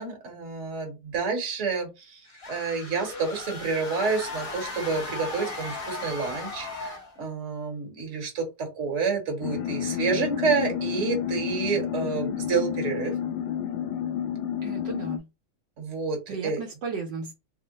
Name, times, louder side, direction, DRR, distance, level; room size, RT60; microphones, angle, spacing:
voice 1, 0.0-2.2 2.5-13.1 15.8-16.6, right 4 dB, 40° right, 1.4 m, -29 dB
sound 1, 2.2-7.2, left 3 dB, 30° left, 0.7 m, -37 dB
sound 2, 9.4-15.2, left 9 dB, 75° left, 1.2 m, -30 dB
voice 2, 14.6-15.3 16.3-17.3, right 5 dB, 70° right, 1.2 m, -35 dB
3.5 x 2.0 x 3.9 m
omnidirectional pair, 2.1 m